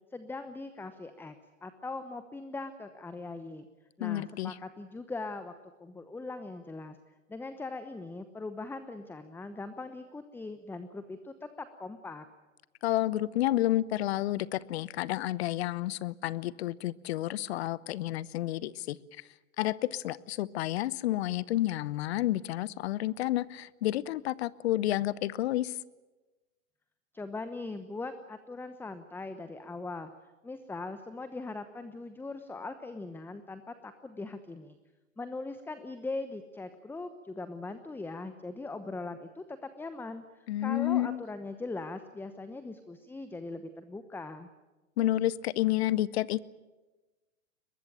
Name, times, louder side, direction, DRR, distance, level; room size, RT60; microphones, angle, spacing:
voice 1, 0.1-3.7 4.0-5.5 5.8-7.0 7.3-12.3 27.1-30.1 30.4-34.8 35.2-44.5, left 3 dB, 5° left, 10 dB, 1.0 m, -40 dB
voice 2, 4.0-4.5 12.8-19.0 19.6-25.7 40.5-41.2 45.0-46.4, left 14 dB, 55° left, 20 dB, 0.9 m, -30 dB
22.5 x 20.5 x 9.0 m, 1.2 s
hypercardioid pair, 105°, 38 cm